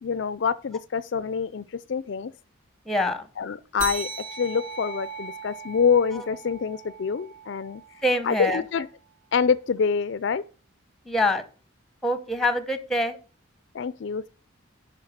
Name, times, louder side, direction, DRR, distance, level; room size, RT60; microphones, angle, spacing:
voice 1, 0.0-2.3 3.4-4.1 4.4-7.8 8.2-8.9 9.3-10.4 13.7-14.3, left 6 dB, 60° left, 0.4 m, -26 dB
voice 2, 2.9-3.3 6.1-6.2 8.0-8.6 11.1-11.4 12.0-13.2, left 1 dB, ahead, 0.9 m, -25 dB
sound 1, 3.8-8.7, right 4 dB, 80° right, 3.5 m, -39 dB
10.5 x 4.8 x 5.0 m
head